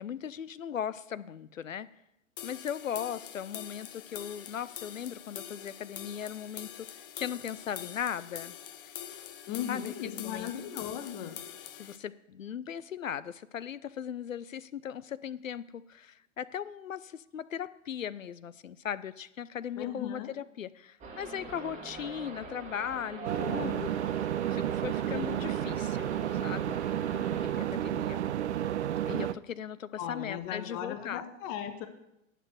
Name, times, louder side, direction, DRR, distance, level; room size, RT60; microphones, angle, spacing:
voice 1, 0.0-1.9 2.4-8.5 9.7-10.5 11.8-24.2 24.5-26.8 27.4-28.2 29.0-31.2, left 8 dB, 75° left, 17 dB, 0.6 m, -38 dB
sound 1, 2.4-12.0, left 10 dB, 45° left, 0.8 m, -44 dB
voice 2, 9.5-11.4 19.8-20.3 30.0-31.9, left 10 dB, 15° left, 9 dB, 0.4 m, -37 dB
sound 2, 21.0-27.5, right 4 dB, 20° right, 1.5 m, -43 dB
sound 3, 23.2-29.3, right 11 dB, 60° right, 0.5 m, -31 dB
10.0 x 6.7 x 6.0 m, 0.86 s
figure-of-eight pair, 110°, 40 cm